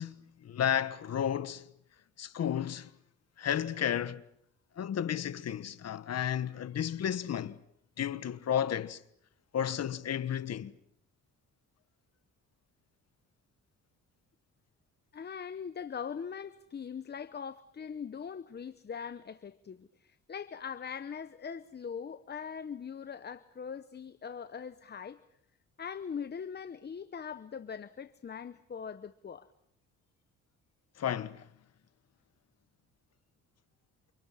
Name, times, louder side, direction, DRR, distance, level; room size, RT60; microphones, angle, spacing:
voice 1, 0.0-1.7 2.2-2.9 3.4-4.2 4.8-7.6 8.0-9.0 9.5-10.7 31.0-31.4, left 9 dB, 55° left, 1.4 m, -32 dB
voice 2, 15.1-25.2 25.8-29.5, left 7 dB, 35° left, 0.9 m, -41 dB
29.0 x 29.0 x 5.7 m
cardioid pair, 90°, 30 cm